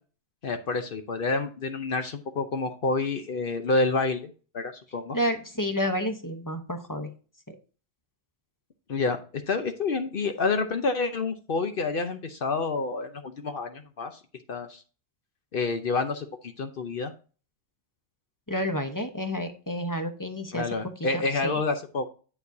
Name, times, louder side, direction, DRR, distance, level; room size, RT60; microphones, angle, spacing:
voice 1, 0.4-5.2 8.9-14.2 14.5-14.8 15.5-17.1 20.5-22.1, left 3 dB, 60° left, 7 dB, 0.9 m, -28 dB
voice 2, 5.1-7.1 18.5-20.6 21.1-21.6, equal, 20° left, 5 dB, 1.0 m, -30 dB
8.7 x 7.1 x 2.7 m, 0.36 s
omnidirectional pair, 1.1 m